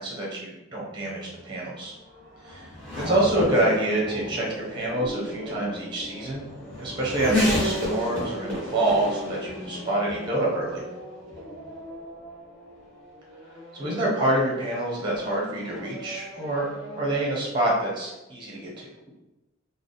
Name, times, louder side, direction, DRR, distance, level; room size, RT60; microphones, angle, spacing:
voice 1, 0.0-1.9 2.4-2.7 2.9-4.4 4.7-6.4 6.8-10.8 13.8-16.6 16.9-18.9, right 1 dB, 25° right, -3 dB, 0.8 m, -26 dB
Race car auto racing / Accelerating revving vroom, 0.9-17.2, left 1 dB, 5° left, 1.3 m, -33 dB
3.4 x 2.0 x 3.9 m, 1.0 s
head